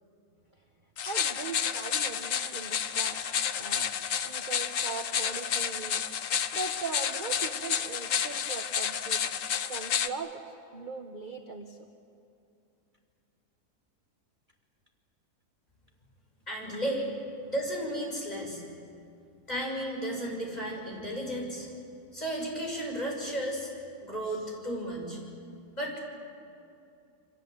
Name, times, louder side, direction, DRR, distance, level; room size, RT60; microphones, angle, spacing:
sound 1, 1.0-10.1, left 8 dB, 60° left, 1.2 m, -30 dB
voice 1, 1.1-4.0 4.2-9.3 9.5-11.9, right 4 dB, 30° right, 3 dB, 1.3 m, -40 dB
voice 2, 16.5-17.1 17.5-18.6 19.5-21.7 22.1-23.7 24.0-25.2 25.7-26.0, right 1 dB, 25° left, -1 dB, 6.5 m, -33 dB
28.5 x 25.0 x 8.0 m, 2.5 s
omnidirectional pair, 1.7 m